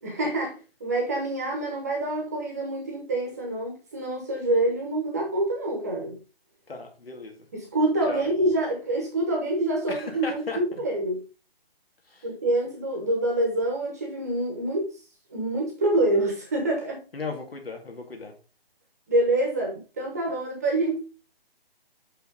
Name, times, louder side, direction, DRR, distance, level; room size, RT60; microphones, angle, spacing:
voice 1, 0.0-6.2 7.5-11.2 12.2-14.9 15.3-17.0 19.1-21.0, right 1 dB, 15° right, 1.1 m, -26 dB
voice 2, 6.7-7.4 8.1-8.3 9.9-10.6 12.1-12.3 17.1-18.3, left 4 dB, 70° left, 2.3 m, -36 dB
6.0 x 5.7 x 3.7 m
hypercardioid pair, 175°, 30 cm